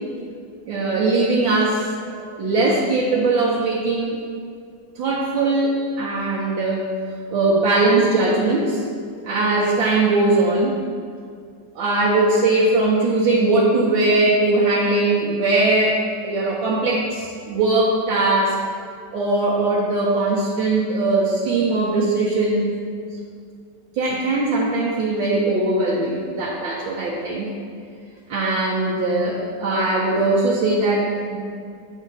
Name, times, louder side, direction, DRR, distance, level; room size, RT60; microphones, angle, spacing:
voice 1, 0.7-4.2 5.0-6.9 7.3-8.8 9.3-10.7 11.8-18.6 19.1-22.7 24.0-27.5 28.3-31.4, right 2 dB, 85° right, -6 dB, 1.6 m, -20 dB
8.3 x 6.2 x 2.7 m, 2.2 s
omnidirectional pair, 2.1 m